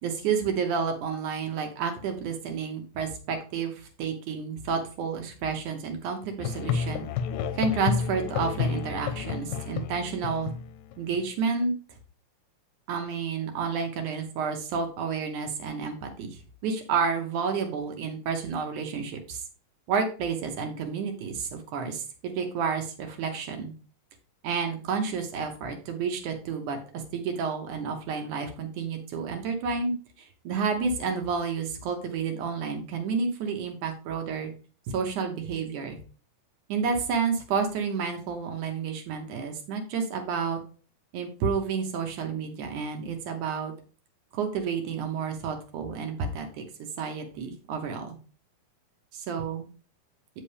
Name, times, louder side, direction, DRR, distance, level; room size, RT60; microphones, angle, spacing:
voice 1, 0.0-7.1 7.5-10.5 11.0-11.7 12.9-19.4 19.9-23.7 24.4-34.5 34.9-36.0 36.7-40.6 41.1-43.7 44.3-46.6 47.0-48.2 49.1-49.7, right 5 dB, 70° right, 5 dB, 2.3 m, -30 dB
Musical instrument, 6.4-11.2, left 7 dB, 85° left, 2.2 m, -31 dB
8.2 x 5.4 x 3.3 m, 0.38 s
omnidirectional pair, 3.9 m